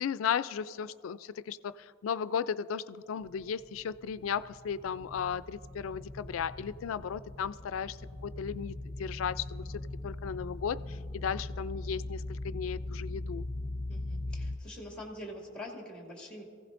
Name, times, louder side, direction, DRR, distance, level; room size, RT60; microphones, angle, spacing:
voice 1, 0.0-13.4, left 7 dB, 80° left, 16 dB, 0.4 m, -35 dB
sound 1, 3.2-14.6, left 2 dB, 20° left, 0.5 m, -40 dB
voice 2, 13.9-16.4, left 1 dB, 5° left, -1 dB, 2.2 m, -44 dB
24.5 x 16.0 x 2.5 m, 2.4 s
head